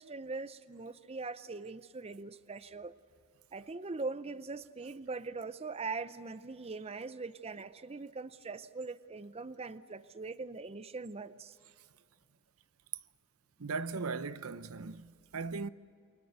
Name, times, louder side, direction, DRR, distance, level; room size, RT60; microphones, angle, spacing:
voice 1, 0.0-2.9 3.5-11.6, right 3 dB, 30° right, 0.6 m, -41 dB
voice 2, 13.6-15.7, right 4 dB, 80° right, 0.8 m, -38 dB
28.0 x 24.0 x 8.0 m
head